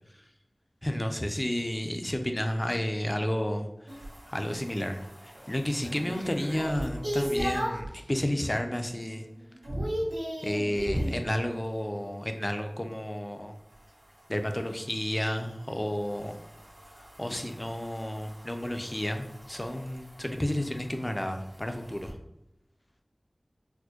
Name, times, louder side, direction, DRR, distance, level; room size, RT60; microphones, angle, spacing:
voice 1, 0.8-3.7 4.3-9.3 10.4-13.6 14.3-16.4 17.0-22.1, left 1 dB, 25° left, 5 dB, 0.4 m, -31 dB
sound 1, 3.9-7.9 8.4-8.8 9.1-11.2 13.7-22.1, equal, 90° right, 1.2 m, -37 dB
4.3 x 2.1 x 2.8 m, 0.84 s
wide cardioid pair, 50°, 0 cm